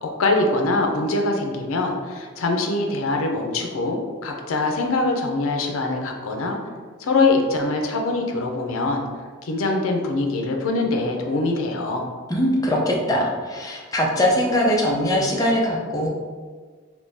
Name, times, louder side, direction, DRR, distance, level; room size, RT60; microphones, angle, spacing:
voice 1, 0.0-6.6 7.0-9.0 9.4-12.1, left 2 dB, 80° left, 2 dB, 0.5 m, -23 dB
voice 2, 12.3-16.1, equal, 20° left, -1 dB, 0.5 m, -21 dB
3.6 x 2.7 x 2.6 m, 1.5 s
head